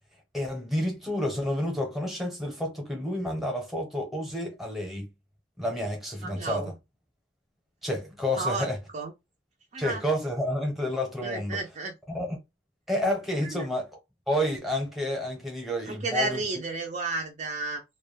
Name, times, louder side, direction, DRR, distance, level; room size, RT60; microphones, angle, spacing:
voice 1, 0.3-5.1 5.6-6.6 7.8-8.8 9.8-11.6 12.1-12.4 12.9-13.9 14.3-16.4, left 1 dB, ahead, 0.8 m, -30 dB
voice 2, 6.2-6.7 8.3-9.1 9.7-10.0 11.2-11.9 13.4-13.7 15.8-17.8, right 3 dB, 40° right, 0.4 m, -32 dB
2.3 x 2.1 x 3.2 m
head